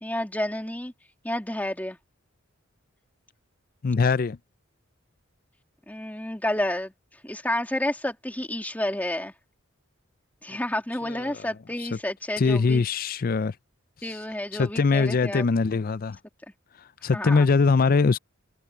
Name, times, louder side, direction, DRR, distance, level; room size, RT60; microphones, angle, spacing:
voice 1, 0.0-0.9 1.2-2.0 5.9-6.9 7.2-9.3 10.4-12.8 14.0-15.5 17.1-17.5, left 1 dB, 10° left, 2.7 m, -30 dB
voice 2, 3.8-4.4 11.0-11.3 11.9-12.0 12.4-13.5 14.5-16.2 17.0-18.2, left 4 dB, 45° left, 0.4 m, -22 dB
head